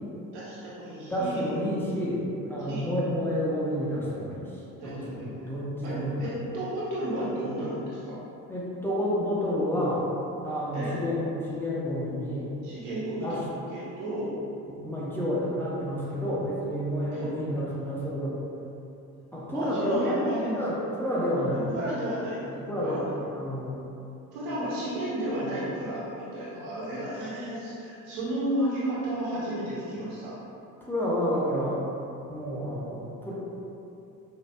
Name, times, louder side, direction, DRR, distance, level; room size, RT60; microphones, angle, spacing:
voice 1, 0.3-1.5 2.7-2.9 4.8-5.3 5.8-8.1 10.7-11.0 12.6-13.3 13.7-14.3 17.1-17.3 19.5-20.7 21.7-22.4 22.8-23.0 24.3-30.3, right 1 dB, 65° right, -9 dB, 1.3 m, -32 dB
voice 2, 1.1-6.2 8.5-10.1 10.4-12.5 13.2-13.4 14.7-18.3 19.3-20.1 20.6-21.7 22.5-23.8 30.8-31.8 32.3-33.3, equal, 5° left, -8 dB, 0.9 m, -30 dB
5.0 x 2.8 x 2.2 m, 2.8 s
figure-of-eight pair, 50°, 42 cm